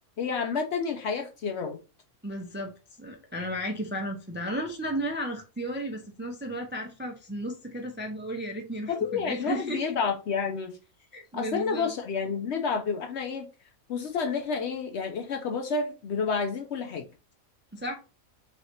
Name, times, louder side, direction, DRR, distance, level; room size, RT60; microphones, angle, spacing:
voice 1, 0.2-1.8 8.9-10.8 11.3-13.5 13.9-17.0, left 5 dB, 65° left, 0.7 m, -30 dB
voice 2, 2.2-9.8 11.1-11.9 17.7-17.9, right 1 dB, 15° right, 0.4 m, -34 dB
3.2 x 2.8 x 4.2 m
omnidirectional pair, 1.5 m